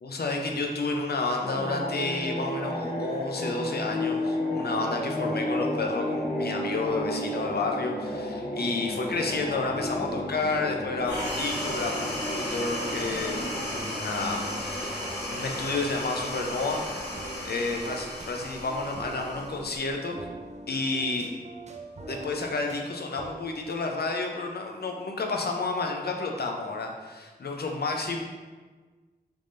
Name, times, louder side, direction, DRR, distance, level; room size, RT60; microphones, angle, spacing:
voice 1, 0.0-15.0 15.3-17.1 17.4-20.2 20.7-21.3 22.1-28.2, left 3 dB, 70° left, 2 dB, 0.5 m, -31 dB
sound 1, 1.3-17.9, left 1 dB, 35° left, 0.7 m, -33 dB
sound 2, 11.0-19.9, equal, 90° left, 1.3 m, -35 dB
Calm Piano Jazz Loop, 16.7-23.3, right 2 dB, 45° right, 0.4 m, -44 dB
3.4 x 2.6 x 3.2 m, 1.4 s
wide cardioid pair, 60°, 17 cm